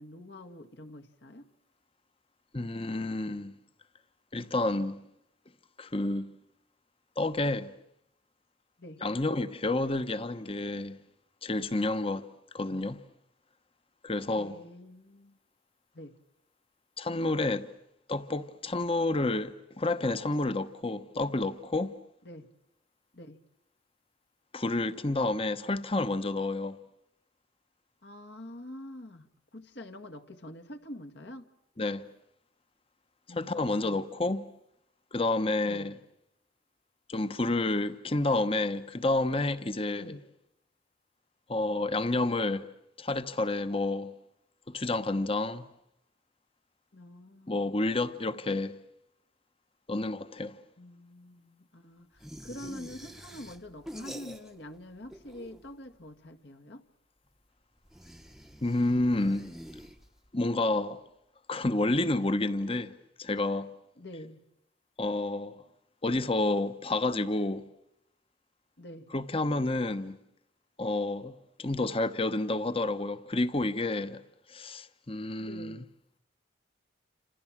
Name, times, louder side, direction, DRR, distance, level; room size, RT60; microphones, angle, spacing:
voice 1, 0.0-1.5 8.8-9.0 14.3-15.4 15.9-16.1 22.2-22.5 23.1-23.4 28.0-31.5 33.3-34.1 35.6-36.0 40.0-40.2 46.9-47.7 50.8-56.8 64.0-64.4 68.8-69.1 75.4-75.8, left 1 dB, 60° left, 1.8 m, -46 dB
voice 2, 2.5-3.5 4.3-5.0 5.8-6.3 7.2-7.7 9.0-11.0 11.4-12.3 12.5-13.0 14.0-14.6 17.0-17.7 18.1-21.9 24.5-26.8 31.8-32.0 33.4-34.4 35.1-35.9 37.1-40.2 41.5-42.7 43.0-44.1 44.7-45.7 47.5-48.7 49.9-50.6 58.6-59.5 60.3-61.0 61.5-62.9 63.2-63.7 65.0-65.6 66.0-67.6 69.1-70.2 70.8-71.3 71.6-74.2 74.5-75.8, left 2 dB, 30° left, 1.1 m, -29 dB
sound 1, 52.2-54.8 55.0-55.9 57.9-60.4, equal, ahead, 0.9 m, -46 dB
28.5 x 27.0 x 7.4 m
head